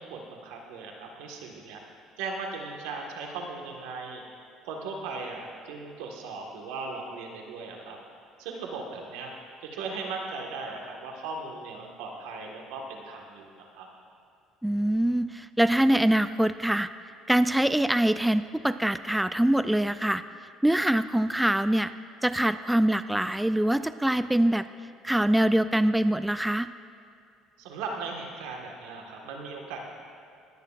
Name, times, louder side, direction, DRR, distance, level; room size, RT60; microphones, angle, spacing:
voice 1, 0.0-1.8 2.2-4.2 4.6-8.0 8.4-9.3 9.7-13.9 27.6-29.8, right 4 dB, 85° right, 1 dB, 1.6 m, -38 dB
voice 2, 14.6-16.9 17.3-20.2 20.6-21.9 22.2-24.7 25.0-26.7, right 1 dB, 5° right, 12 dB, 0.3 m, -24 dB
20.5 x 9.6 x 2.5 m, 2.5 s
supercardioid pair, 95°, 0 cm